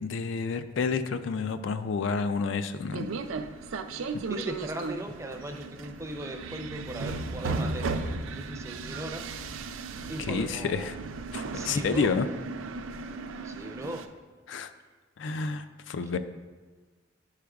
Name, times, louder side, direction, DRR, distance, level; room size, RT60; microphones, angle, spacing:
voice 1, 0.0-3.1 10.3-11.0 11.3-12.3 14.5-14.7 15.2-16.2, left 5 dB, 70° left, 11 dB, 0.4 m, -29 dB
sound 1, 2.9-14.1, right 3 dB, 90° right, 0.4 m, -36 dB
voice 2, 4.3-7.9 8.3-9.2 9.6-9.7 10.1-10.9 11.5-12.1 13.4-14.1, right 1 dB, 15° right, 4 dB, 0.5 m, -38 dB
11.0 x 4.9 x 2.3 m, 1.4 s
head